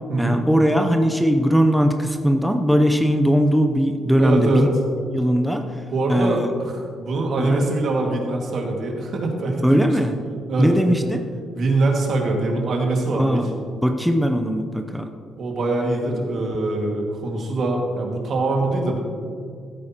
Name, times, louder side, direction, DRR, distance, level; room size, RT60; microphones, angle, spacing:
voice 1, 0.2-4.7 5.1-5.6 6.1-6.5 7.4-7.6 9.6-10.1 10.6-11.3 13.2-13.5 13.8-15.1, equal, ahead, 4 dB, 0.6 m, -19 dB
voice 2, 4.2-4.7 5.9-9.8 10.5-11.0 11.5-13.5 15.4-19.0, right 2 dB, 60° right, 1 dB, 1.9 m, -23 dB
14.5 x 8.9 x 2.9 m, 2.2 s
cardioid pair, 90°, 0 cm